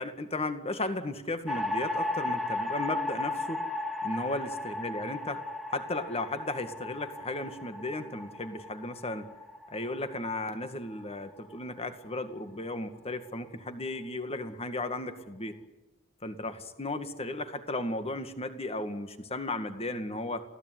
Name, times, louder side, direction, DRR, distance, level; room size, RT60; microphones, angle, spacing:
voice 1, 0.0-3.6 4.0-5.4 5.7-9.3 9.7-15.6 16.2-20.4, left 2 dB, 30° left, 9 dB, 2.1 m, -35 dB
sound 1, 1.5-11.8, left 2 dB, ahead, 1.8 m, -36 dB
27.5 x 17.0 x 9.6 m, 1.1 s
head